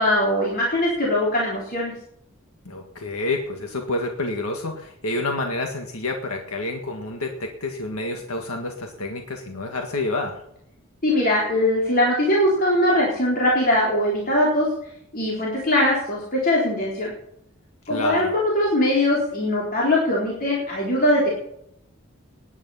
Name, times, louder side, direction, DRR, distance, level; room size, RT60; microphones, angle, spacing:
voice 1, 0.0-1.9 11.0-14.7 15.1-17.1 17.9-21.3, left 1 dB, 40° left, -5 dB, 4.0 m, -21 dB
voice 2, 2.7-10.4 17.9-18.3, left 2 dB, 85° left, 3 dB, 1.8 m, -28 dB
18.5 x 10.5 x 5.7 m, 0.77 s
head